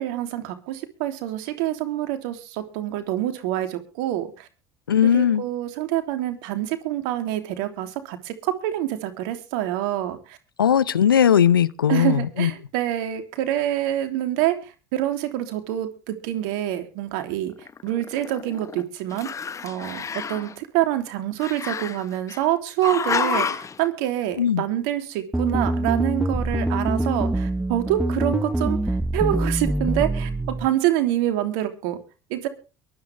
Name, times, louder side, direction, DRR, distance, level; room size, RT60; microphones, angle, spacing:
voice 1, 0.0-4.5 5.0-10.4 11.9-14.5 14.9-17.5 17.8-19.3 19.6-28.8 29.1-32.0 32.3-32.5, right 13 dB, 65° right, 3.1 m, -26 dB
voice 2, 4.9-5.4 10.6-12.5 24.4-24.6, left 9 dB, 85° left, 0.8 m, -18 dB
Growling, 17.6-18.8 19.1-20.5 21.4-22.4 22.8-23.8, left 6 dB, 25° left, 1.2 m, -29 dB
sound 1, 25.3-30.7, right 1 dB, 5° right, 0.9 m, -24 dB
23.0 x 9.3 x 3.5 m
hypercardioid pair, 70°, 11 cm